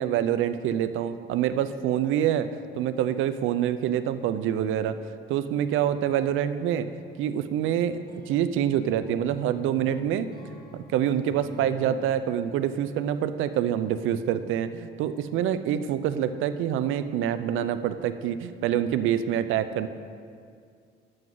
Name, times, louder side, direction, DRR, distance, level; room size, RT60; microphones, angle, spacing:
voice 1, 0.0-5.0 5.3-6.9 7.2-10.3 10.7-19.9, right 10 dB, 90° right, 12 dB, 0.5 m, -26 dB
sound 1, 5.9-12.1, left 1 dB, 20° left, 1.8 m, -45 dB
10.5 x 7.7 x 3.8 m, 2.2 s
cardioid pair, 90°, 20 cm